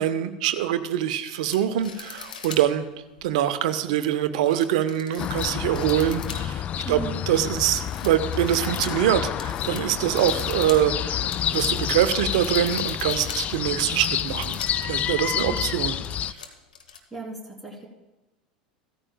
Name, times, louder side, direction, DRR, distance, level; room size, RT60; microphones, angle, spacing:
voice 1, 0.0-2.9 3.2-6.6 6.9-7.0 7.3-11.3 11.5-16.0, right 11 dB, 55° right, 11 dB, 0.8 m, -24 dB
sound 1, 1.4-2.7 3.2-3.3 4.4-6.7 7.0-7.5 7.8-14.8 15.2-15.3 15.7-17.0, left 6 dB, 70° left, 1.1 m, -41 dB
sound 2, 5.2-16.3, left 10 dB, 30° left, 0.3 m, -29 dB
voice 2, 6.8-7.2 15.3-15.6 17.1-17.9, right 4 dB, ahead, -2 dB, 3.5 m, -37 dB
15.5 x 13.5 x 2.3 m, 1.1 s
figure-of-eight pair, 80°, 5 cm